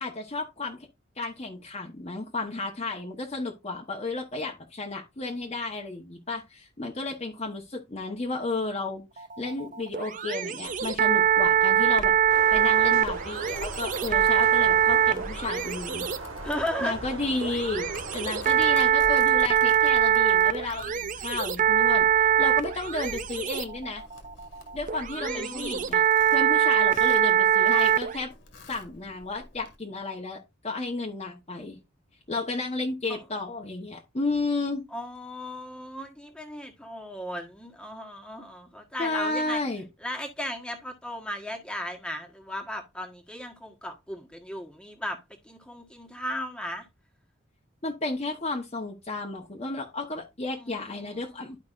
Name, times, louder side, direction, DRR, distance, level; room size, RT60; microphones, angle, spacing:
voice 1, 0.0-0.8 1.2-12.1 12.5-16.1 16.8-17.9 18.1-22.1 22.4-24.0 24.7-26.0 26.3-28.3 28.7-30.4 30.6-31.8 32.3-34.8 39.0-39.8 47.8-51.6, left 3 dB, 30° left, 1.1 m, -32 dB
sound 1, 9.2-28.2, right 10 dB, 40° right, 0.5 m, -23 dB
Domestic sounds home sounds, 10.7-29.8, left 1 dB, 65° left, 1.9 m, -46 dB
sound 2, 12.3-18.9, right 3 dB, 90° right, 1.7 m, -40 dB
voice 2, 16.4-17.0 18.8-18.9 25.2-25.8 33.1-33.2 34.9-39.6 40.0-45.2 45.4-46.8 50.4-51.5, equal, 5° left, 1.4 m, -36 dB
12.0 x 5.2 x 2.5 m
head